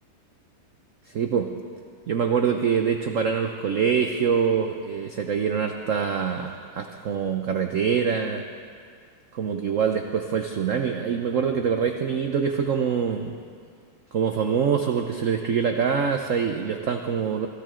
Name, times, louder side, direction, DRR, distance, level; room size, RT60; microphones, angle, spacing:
voice 1, 1.1-1.5 2.1-8.4 9.3-13.4 14.1-17.5, right 6 dB, 85° right, 5 dB, 0.6 m, -25 dB
24.5 x 13.5 x 3.8 m, 2.1 s
omnidirectional pair, 2.3 m